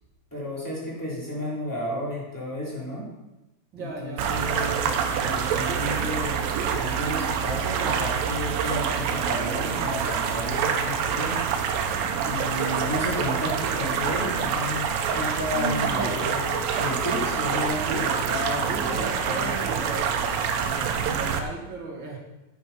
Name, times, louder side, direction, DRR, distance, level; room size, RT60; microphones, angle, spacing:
voice 1, 0.3-3.1 3.8-11.4 12.2-19.6, left 1 dB, 5° left, -6 dB, 3.2 m, -32 dB
voice 2, 3.7-4.6 15.5-16.2 18.7-20.2 20.5-22.2, right 2 dB, 40° right, -1 dB, 2.2 m, -36 dB
sound 1, 4.2-21.4, right 7 dB, 85° right, 2.6 m, -26 dB
9.0 x 8.4 x 5.7 m, 1.0 s
omnidirectional pair, 4.0 m